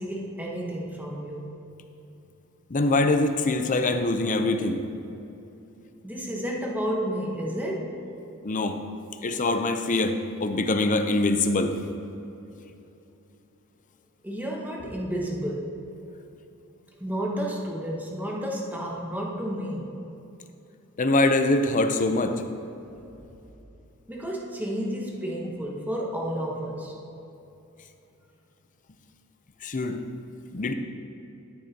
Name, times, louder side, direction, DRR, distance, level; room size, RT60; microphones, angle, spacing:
voice 1, 0.0-1.5 6.0-7.9 14.2-15.8 17.0-20.0 24.1-26.9, equal, 10° right, -2 dB, 1.0 m, -31 dB
voice 2, 2.7-4.8 8.4-8.8 9.2-11.8 21.0-22.4 29.6-30.0 30.5-30.7, left 2 dB, 35° left, 7 dB, 0.6 m, -23 dB
13.0 x 7.6 x 2.8 m, 2.9 s
head